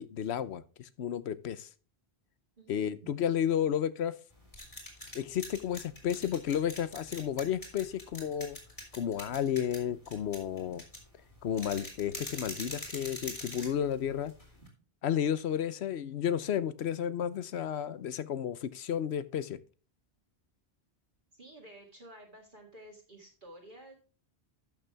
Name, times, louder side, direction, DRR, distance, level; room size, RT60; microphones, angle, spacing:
voice 1, 0.0-1.7 2.7-4.1 5.1-8.6 8.9-10.8 11.4-14.3 15.0-19.6, left 9 dB, 80° left, 1.0 m, -32 dB
voice 2, 2.6-3.1 14.6-14.7 21.3-23.9, right 1 dB, 50° right, 2.1 m, -52 dB
sound 1, 4.3-14.7, left 1 dB, 30° left, 3.3 m, -45 dB
12.0 x 6.7 x 3.4 m
omnidirectional pair, 1.1 m